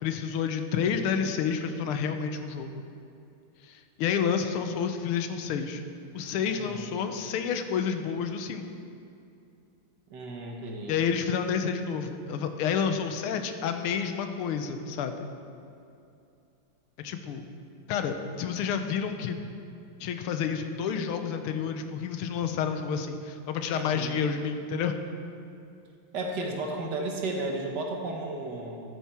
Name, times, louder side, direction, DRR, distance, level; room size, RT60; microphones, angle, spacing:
voice 1, 0.0-2.9 3.6-5.8 6.1-8.7 10.9-15.3 17.0-17.4 17.9-19.4 20.0-25.0, left 7 dB, 85° left, 7 dB, 1.6 m, -29 dB
voice 2, 6.5-6.8 10.1-11.0 23.7-24.2 26.1-28.8, right 2 dB, 55° right, 1 dB, 1.6 m, -33 dB
12.0 x 9.2 x 4.4 m, 2.6 s
omnidirectional pair, 2.4 m